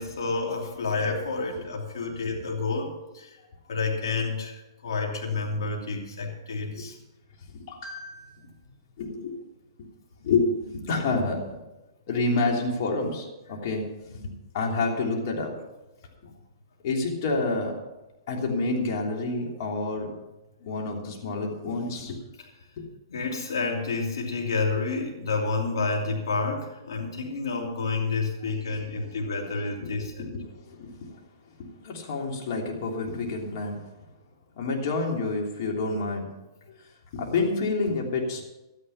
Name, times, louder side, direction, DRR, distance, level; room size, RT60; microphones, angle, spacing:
voice 1, 0.0-3.4 3.7-7.0 23.1-30.3, left 3 dB, 75° left, 0 dB, 3.0 m, -29 dB
voice 2, 7.5-8.3 9.0-9.4 10.2-11.4 12.1-13.8 14.1-14.3 14.5-15.5 16.8-17.7 18.3-20.1 20.6-22.2 22.8-22.9 29.8-31.2 31.6-33.8 34.6-36.3 37.1-38.4, left 3 dB, 55° left, 0 dB, 3.1 m, -28 dB
13.0 x 10.0 x 5.8 m, 1.0 s
hypercardioid pair, 130°, 2 cm